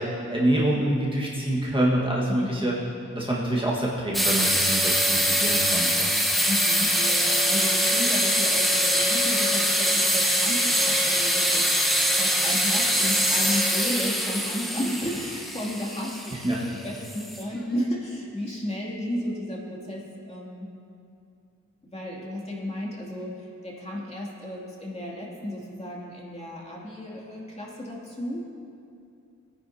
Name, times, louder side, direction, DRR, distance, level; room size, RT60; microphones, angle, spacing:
voice 1, 0.0-2.7 3.1-6.1 16.3-16.6, right 1 dB, 15° right, -5 dB, 1.5 m, -26 dB
voice 2, 2.3-2.7 6.5-11.8 12.2-16.2 16.6-20.7 21.9-28.4, left 1 dB, 20° left, -5 dB, 2.6 m, -33 dB
sound 1, 4.1-17.6, equal, ahead, 1.1 m, -23 dB
20.0 x 10.0 x 2.8 m, 2.6 s
wide cardioid pair, 120°, 29 cm